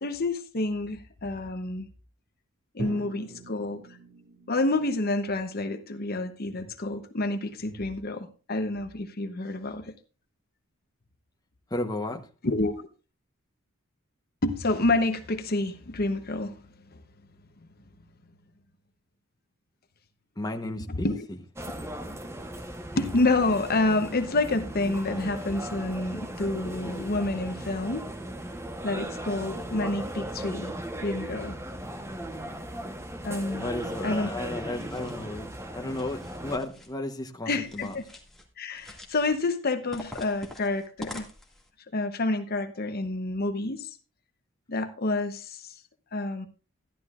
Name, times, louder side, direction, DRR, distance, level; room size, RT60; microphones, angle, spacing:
voice 1, 0.0-1.9 2.7-3.8 4.5-9.9 12.4-12.9 14.4-16.6 20.9-21.3 23.0-28.1 28.8-30.7 31.0-31.5 33.2-33.7 34.0-34.3 37.5-38.0 38.6-41.3 41.9-43.9 44.7-45.7 46.1-46.5, left 2 dB, 50° left, 0.9 m, -28 dB
Drum, 2.8-6.8, right 2 dB, 85° right, 2.3 m, -44 dB
voice 2, 11.7-12.3 20.4-21.1 33.6-35.5 35.7-37.9, left 2 dB, 20° left, 1.0 m, -33 dB
sound 1, 21.6-36.6, right 1 dB, 15° right, 1.0 m, -37 dB
sound 2, 34.6-35.3 35.8-36.9 37.6-38.5 38.7-39.3 39.9-41.7, left 1 dB, ahead, 2.0 m, -45 dB
14.0 x 11.5 x 2.4 m
head